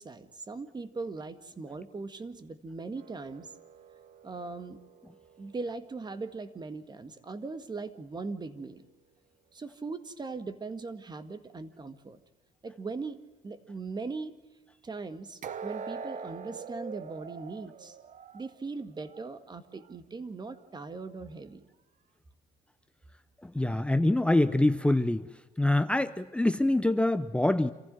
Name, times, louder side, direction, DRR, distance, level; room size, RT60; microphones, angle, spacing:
voice 1, 0.0-3.5 4.2-4.8 5.4-8.9 9.5-12.2 12.6-13.2 13.4-14.4 14.8-18.0 18.3-21.7, right 3 dB, 25° right, 11 dB, 1.8 m, -39 dB
sound 1, 3.0-6.1 15.4-19.3 19.7-19.9 20.5-20.6, right 6 dB, 45° right, 1.0 m, -44 dB
voice 2, 23.4-25.3 25.6-27.7, left 1 dB, 5° left, 11 dB, 0.7 m, -25 dB
27.5 x 15.5 x 7.6 m, 1.1 s
cardioid pair, 110°, 17 cm